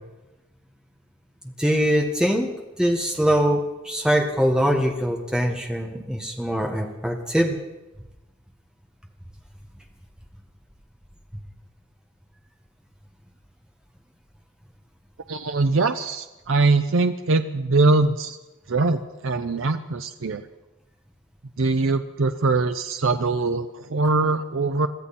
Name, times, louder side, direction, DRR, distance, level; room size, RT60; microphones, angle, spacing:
voice 1, 1.6-2.5 2.8-7.5, equal, 5° right, 2 dB, 1.6 m, -22 dB
voice 2, 15.3-18.4 18.7-20.4 21.6-24.9, right 3 dB, 80° right, 8 dB, 0.7 m, -22 dB
22.5 x 14.0 x 4.3 m, 1.0 s
head